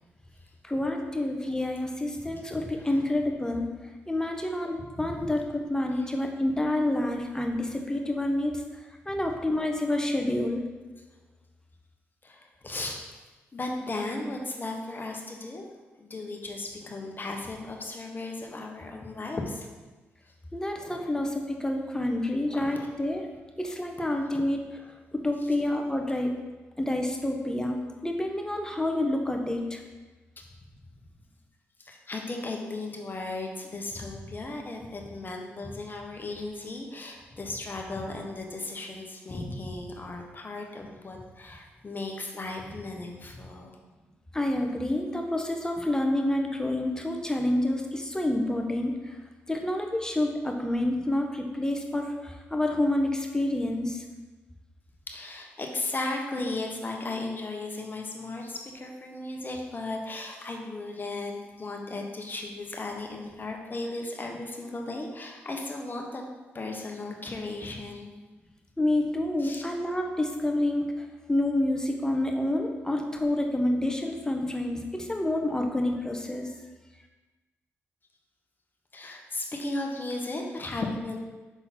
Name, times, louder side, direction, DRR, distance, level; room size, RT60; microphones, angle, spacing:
voice 1, 0.6-3.6 4.1-5.4 5.7-8.5 9.1-10.6 20.5-23.2 23.6-24.6 25.2-26.3 26.8-27.8 28.0-29.8 44.3-49.2 49.5-54.0 68.8-70.9 71.3-76.5, left 1 dB, 10° left, 2 dB, 1.0 m, -28 dB
voice 2, 2.6-3.1 4.3-4.4 4.8-5.3 5.9-6.1 12.2-13.1 13.5-15.7 16.0-19.7 20.2-20.3 20.7-21.0 22.5-22.9 24.3-24.4 25.4-25.5 31.8-43.8 55.1-66.2 66.5-68.1 69.4-69.6 78.9-81.2, left 2 dB, 35° left, 1 dB, 1.2 m, -36 dB
6.0 x 3.8 x 4.2 m, 1.2 s
supercardioid pair, 45°, 5 cm